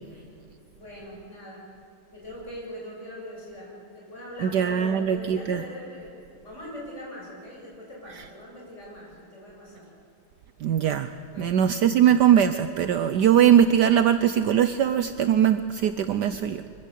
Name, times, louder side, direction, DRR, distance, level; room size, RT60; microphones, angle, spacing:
voice 1, 0.7-1.6 2.1-9.9 11.3-11.6, left 1 dB, 35° left, -4 dB, 7.6 m, -41 dB
voice 2, 4.4-5.6 10.6-11.1 11.4-16.6, right 9 dB, 65° right, 11 dB, 1.2 m, -21 dB
24.5 x 15.0 x 8.4 m, 2.6 s
omnidirectional pair, 2.2 m